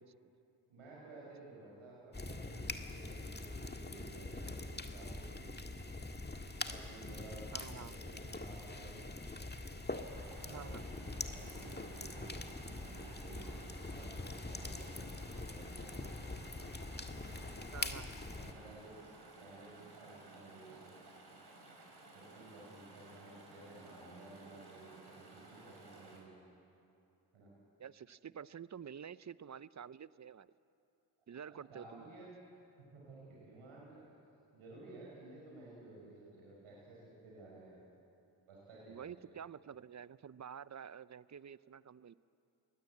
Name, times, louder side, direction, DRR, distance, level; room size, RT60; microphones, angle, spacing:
voice 1, 0.7-6.0 6.7-9.1 10.4-10.7 11.2-16.6 17.3-17.5 18.3-19.0 19.4-20.9 22.1-26.4 27.3-27.5 31.5-34.0 34.5-37.8 38.5-39.3, right 2 dB, 80° right, -5 dB, 5.6 m, -55 dB
sound 1, 2.1-18.5, left 2 dB, 20° left, 1.7 m, -44 dB
voice 2, 7.5-8.0 10.4-10.8 17.7-18.2 27.8-30.5 31.3-32.3 38.9-42.1, right 8 dB, 35° right, 18 dB, 0.7 m, -49 dB
Chatter / Stream, 9.9-26.2, right 2 dB, 50° right, 6.1 m, -56 dB
23.0 x 19.5 x 8.5 m, 2.7 s
supercardioid pair, 45°, 49 cm